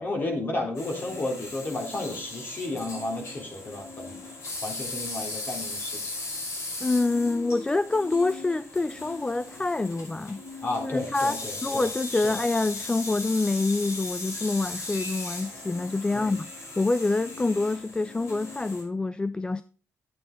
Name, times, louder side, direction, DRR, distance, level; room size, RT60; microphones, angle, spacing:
voice 1, 0.0-4.2 4.6-6.1 10.6-11.8 12.1-12.3 16.1-16.3, left 2 dB, 40° left, 3.8 m, -32 dB
sound 1, 0.7-18.8, left 2 dB, 70° left, 6.3 m, -38 dB
voice 2, 6.8-10.4 10.8-19.6, left 3 dB, 15° left, 0.4 m, -26 dB
10.5 x 8.6 x 4.0 m
cardioid pair, 115°, 5 cm